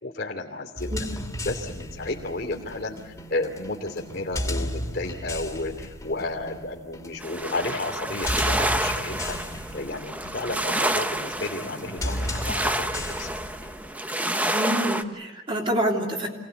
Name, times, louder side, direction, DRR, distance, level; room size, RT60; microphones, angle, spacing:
voice 1, 0.0-1.0 1.4-9.4 9.7-13.3, left 2 dB, 55° left, 1 dB, 2.8 m, -32 dB
sound 1, 0.8-13.9, left 1 dB, 15° left, 2.5 m, -35 dB
sound 2, 7.2-15.0, right 1 dB, 10° right, 0.9 m, -29 dB
voice 2, 14.5-16.3, equal, 30° right, 0 dB, 3.3 m, -27 dB
26.5 x 19.0 x 8.3 m, 1.2 s
head